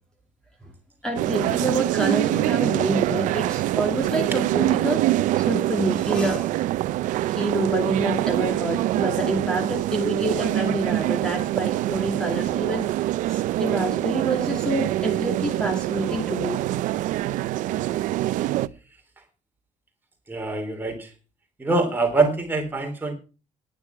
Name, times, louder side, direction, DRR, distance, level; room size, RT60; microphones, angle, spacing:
voice 1, 1.0-5.0 5.3-6.6 7.1-16.7, right 1 dB, 5° left, 4 dB, 2.6 m, -27 dB
sound 1, 1.1-18.7, right 15 dB, 75° right, 0.6 m, -24 dB
voice 2, 20.3-21.1 21.6-23.1, right 3 dB, 15° right, 3 dB, 3.6 m, -24 dB
11.5 x 10.5 x 5.9 m, 0.34 s
cardioid pair, 140°, 13 cm